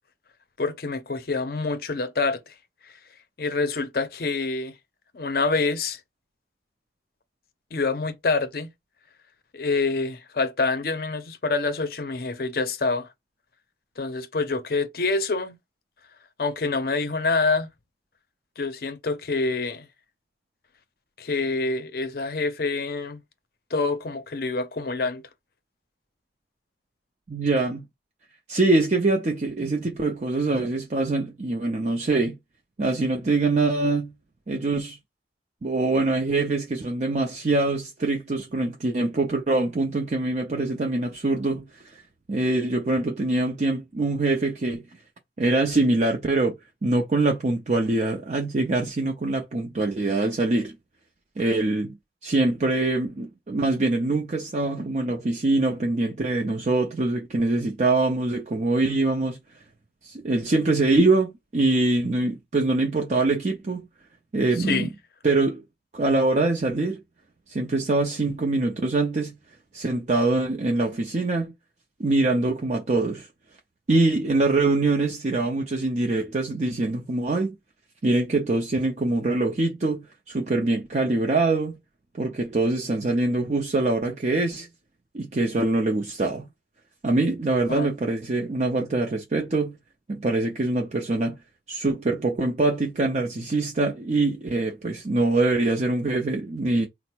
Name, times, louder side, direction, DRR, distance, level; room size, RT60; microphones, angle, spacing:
voice 1, 0.6-2.5 3.4-4.7 5.1-6.0 7.7-8.7 9.5-13.1 14.0-15.6 16.4-17.7 18.6-19.9 21.2-23.2 23.7-25.2 64.7-64.9 87.7-87.9, left 3 dB, 55° left, 0.6 m, -26 dB
voice 2, 27.3-27.8 28.5-32.4 32.8-34.1 34.5-35.0 35.6-42.0 42.3-44.8 45.4-46.5 46.8-50.7 51.4-52.0 52.2-59.4 60.0-63.9 64.3-64.9 65.2-65.6 65.9-67.0 67.5-69.3 69.7-71.5 72.0-73.3 73.9-77.5 78.0-81.8 82.1-84.7 85.1-86.5 87.0-89.8 90.1-91.4 91.7-96.9, right 2 dB, 40° right, 0.5 m, -24 dB
4.2 x 2.0 x 4.3 m
head